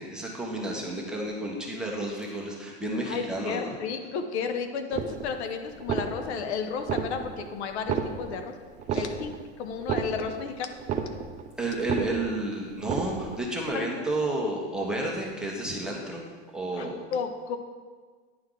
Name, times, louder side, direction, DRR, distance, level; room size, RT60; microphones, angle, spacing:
voice 1, 0.0-3.7 8.9-9.0 11.6-17.0, right 2 dB, ahead, -3 dB, 1.1 m, -31 dB
voice 2, 3.0-8.5 8.9-10.8 13.7-13.9 16.7-17.6, left 6 dB, 75° left, 7 dB, 0.9 m, -33 dB
sound 1, 4.9-5.5 5.8-6.5 6.8-7.5 7.8-8.5 8.8-9.5 9.8-10.5 10.8-11.5 11.8-12.5 12.8-13.5, right 7 dB, 20° right, 0.4 m, -31 dB
10.5 x 4.7 x 3.8 m, 1.5 s
supercardioid pair, 140°, 33 cm